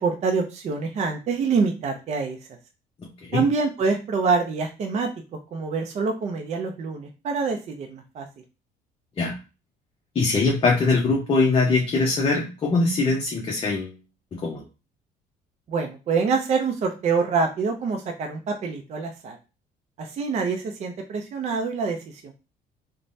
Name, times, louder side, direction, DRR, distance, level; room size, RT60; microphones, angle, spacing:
voice 1, 0.0-2.4 3.3-5.1 5.5-8.3 15.7-19.4 20.0-22.3, right 4 dB, 40° right, 4 dB, 0.5 m, -26 dB
voice 2, 3.0-3.4 9.2-9.4 10.1-14.0 14.3-14.6, left 3 dB, 30° left, -1 dB, 0.7 m, -22 dB
3.1 x 2.1 x 2.6 m, 0.30 s
cardioid pair, 110°, 17 cm